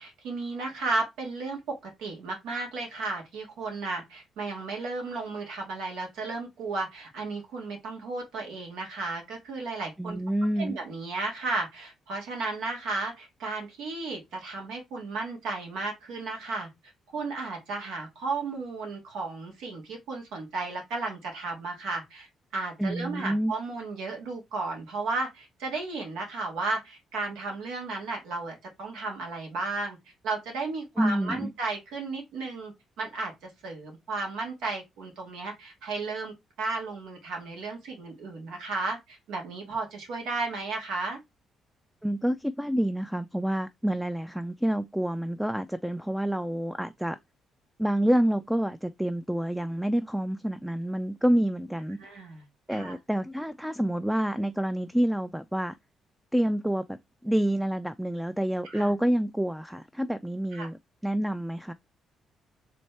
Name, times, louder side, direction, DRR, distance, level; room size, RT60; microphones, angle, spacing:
voice 1, 0.0-10.2 10.6-16.7 17.1-22.3 22.5-30.0 30.2-41.2 52.0-53.0 58.6-58.9 60.5-60.7, right 3 dB, 90° right, 1.8 m, -34 dB
voice 2, 10.0-10.8 22.8-23.5 31.0-31.5 42.0-47.2 47.8-52.0 52.7-55.8 56.3-57.0 57.2-61.7, right 1 dB, 5° right, 0.3 m, -28 dB
4.2 x 3.2 x 3.3 m
cardioid pair, 90°, 0 cm